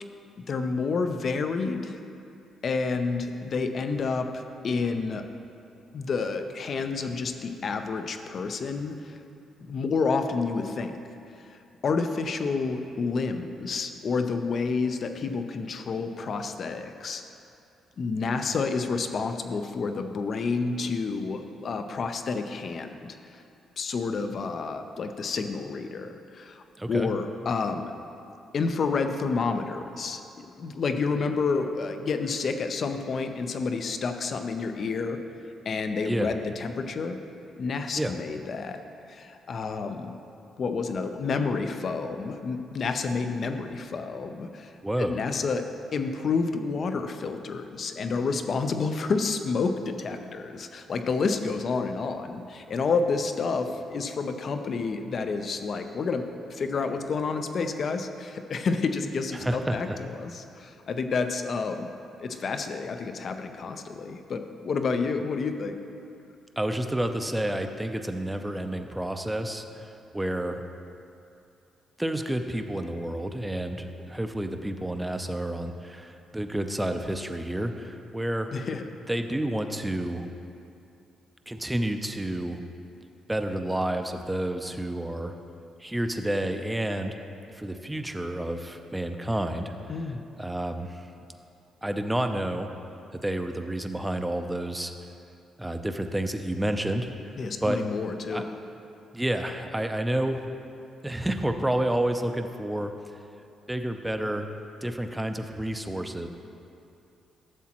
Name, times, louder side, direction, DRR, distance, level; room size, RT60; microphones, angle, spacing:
voice 1, 0.5-2.0 2.6-5.2 5.9-9.2 9.6-11.0 11.5-17.2 18.0-23.4 23.8-26.6 26.9-27.9 28.5-35.2 35.6-37.2 37.6-38.8 39.1-40.1 40.6-44.7 45.0-45.6 45.9-61.9 62.2-65.7 78.5-78.9 89.9-90.2 97.4-98.4, left 4 dB, 50° left, 7 dB, 0.6 m, -29 dB
voice 2, 26.8-27.1 36.0-36.3 37.9-38.1 44.8-45.2 59.3-60.0 66.6-70.6 72.0-78.5 79.1-80.3 81.5-82.6 83.3-85.3 85.8-87.2 87.5-89.9 90.4-91.1 91.8-92.7 93.1-94.9 95.6-97.8 98.3-98.4 99.1-100.4 101.0-103.2 103.7-104.5 104.8-106.3, right 1 dB, 10° right, 6 dB, 0.5 m, -30 dB
12.5 x 7.2 x 3.0 m, 2.7 s
cardioid pair, 90°, 0 cm